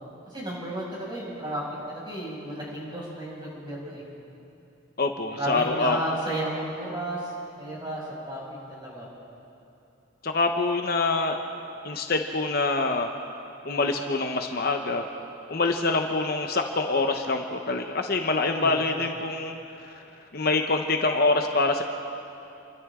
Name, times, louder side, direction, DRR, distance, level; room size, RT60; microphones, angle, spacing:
voice 1, 0.3-1.6 1.9-4.0 5.3-7.3 7.6-8.4 8.7-9.1 18.4-18.8, right 1 dB, 20° right, -6 dB, 6.5 m, -33 dB
voice 2, 5.0-6.0 10.2-11.4 11.8-13.1 13.6-15.1 15.5-19.6 20.3-21.8, left 3 dB, 45° left, 4 dB, 1.0 m, -25 dB
29.5 x 23.5 x 3.8 m, 2.8 s
head